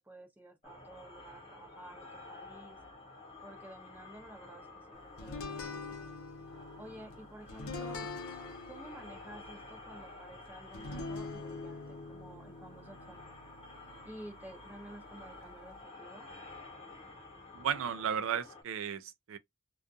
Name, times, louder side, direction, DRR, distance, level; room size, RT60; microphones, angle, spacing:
voice 1, 0.0-2.8 3.4-6.0 6.8-8.1 8.7-13.3 14.0-16.3, right 1 dB, 10° right, 0.5 m, -52 dB
sound 1, 0.6-18.6, left 2 dB, 30° left, 0.9 m, -51 dB
sound 2, 5.2-15.8, left 3 dB, 75° left, 0.6 m, -45 dB
voice 2, 17.5-19.4, right 8 dB, 65° right, 0.4 m, -34 dB
2.4 x 2.3 x 2.5 m
head